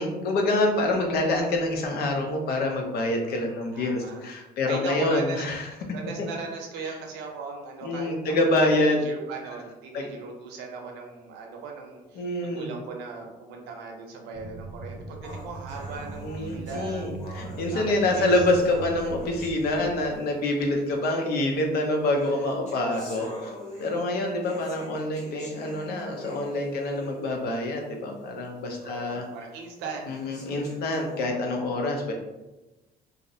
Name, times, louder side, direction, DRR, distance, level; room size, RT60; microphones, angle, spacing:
voice 1, 0.0-5.7 6.2-6.3 7.8-9.0 9.9-10.1 12.2-12.7 16.2-23.3 23.8-29.2 30.1-32.1, left 2 dB, 65° left, 2 dB, 0.5 m, -26 dB
voice 2, 3.7-4.3 4.6-5.5 5.9-8.5 8.8-17.1 17.7-18.3 22.7-23.4 28.8-30.3, right 4 dB, 85° right, 1 dB, 0.6 m, -38 dB
sound 1, 14.3-20.2, right 3 dB, 15° right, 0.8 m, -40 dB
sound 2, 15.2-20.4 21.2-21.3 22.1-27.4 27.8-27.9 28.4-28.5 29.2-29.3 30.1-31.2, left 1 dB, 45° left, 0.9 m, -45 dB
2.5 x 2.0 x 2.6 m, 1.0 s
cardioid pair, 110°, 17 cm